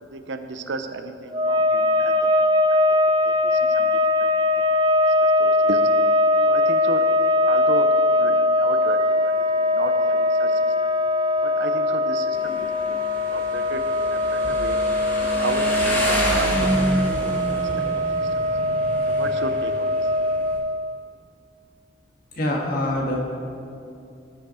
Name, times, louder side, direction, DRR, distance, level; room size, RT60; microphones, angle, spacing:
voice 1, 0.0-2.3 2.7-2.8 3.2-3.9 4.2-4.5 5.2-5.8 6.5-7.0 7.4-9.0 9.2-10.9 11.4-13.0 13.3-14.8 15.2-16.9 17.3-17.9 18.2-18.3 19.1-19.7, right 3 dB, 70° right, 8 dB, 0.6 m, -34 dB
sound 1, 1.3-21.0, left 1 dB, 25° right, 0.3 m, -21 dB
Motorcycle, 12.3-20.6, equal, 10° left, 1.5 m, -28 dB
voice 2, 22.3-23.2, left 1 dB, 50° left, -1 dB, 1.6 m, -24 dB
17.0 x 5.8 x 4.3 m, 2.5 s
head